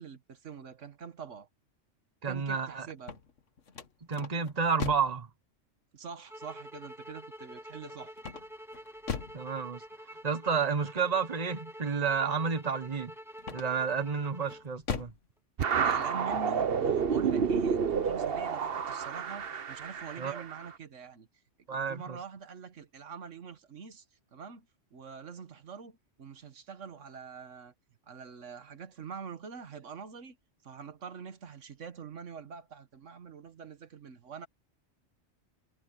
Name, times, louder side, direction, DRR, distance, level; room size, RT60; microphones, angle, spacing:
voice 1, 0.0-1.5 2.3-3.2 5.9-8.1 9.9-10.0 15.7-21.3 21.7-24.0 24.3-27.7 28.1-30.4 30.6-34.5, right 6 dB, 85° right, 1.6 m, -45 dB
voice 2, 2.2-2.9 4.1-5.3 9.3-9.8 10.2-13.1 13.5-15.1 20.2-20.4 21.7-22.2, right 5 dB, 35° right, 1.4 m, -30 dB
sound 1, 2.9-5.2 8.2-9.5 13.4-13.9 14.5-15.3, left 6 dB, 80° left, 1.8 m, -39 dB
sound 2, 6.3-14.7, equal, ahead, 1.6 m, -47 dB
sound 3, 15.6-20.6, right 6 dB, 55° right, 1.1 m, -29 dB
omnidirectional pair, 1.2 m